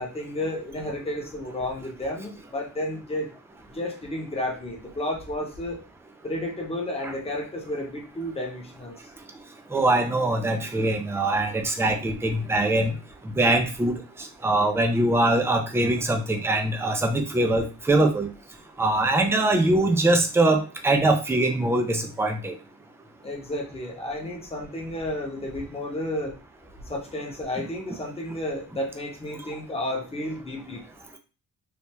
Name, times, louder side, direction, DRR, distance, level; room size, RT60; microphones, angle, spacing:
voice 1, 0.0-3.3 3.7-5.8 6.2-8.9 23.2-26.3 26.9-30.8, left 1 dB, 15° left, -1 dB, 0.9 m, -32 dB
voice 2, 9.7-12.9 13.4-13.9 14.4-18.3 18.8-22.5, right 2 dB, 10° right, 5 dB, 0.4 m, -22 dB
3.3 x 2.5 x 2.9 m, 0.33 s
wide cardioid pair, 145°, 33 cm